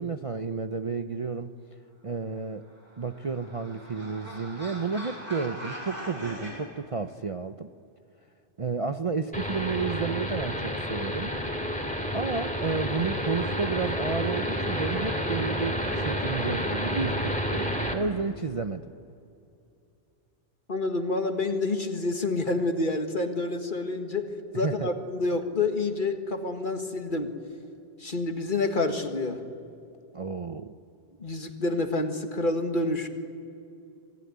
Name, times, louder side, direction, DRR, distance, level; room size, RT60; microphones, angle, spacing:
voice 1, 0.0-1.5 2.0-2.7 3.0-7.7 8.6-11.4 12.1-18.8 24.5-24.9 30.1-30.7, right 4 dB, 35° right, 7 dB, 0.6 m, -31 dB
sound 1, 2.7-6.6, equal, 50° right, 8.1 m, -41 dB
sound 2, 9.3-17.9, equal, 5° left, 2.6 m, -30 dB
voice 2, 20.7-27.3 28.0-29.4 31.2-33.1, left 2 dB, 45° left, 5 dB, 1.9 m, -28 dB
27.0 x 19.0 x 9.5 m, 2.6 s
omnidirectional pair, 1.2 m